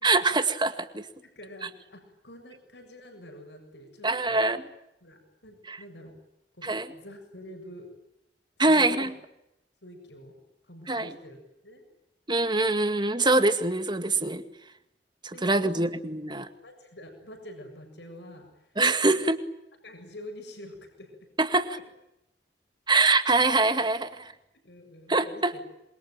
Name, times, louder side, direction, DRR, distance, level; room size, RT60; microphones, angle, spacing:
voice 1, 0.0-1.1 4.0-4.6 5.7-5.8 6.6-6.9 8.6-9.1 10.9-11.1 12.3-14.4 15.2-16.5 18.8-19.4 21.4-21.8 22.9-24.3 25.1-25.5, right 2 dB, 25° right, 9 dB, 2.1 m, -24 dB
voice 2, 1.2-4.4 5.0-6.1 6.6-7.9 8.7-9.0 9.8-10.4 10.6-11.4 11.6-11.8 15.3-15.9 16.6-18.7 19.0-19.2 19.8-21.2 21.7-21.8 24.6-25.6, left 1 dB, 80° left, 5 dB, 7.3 m, -47 dB
27.5 x 22.5 x 9.0 m, 0.87 s
head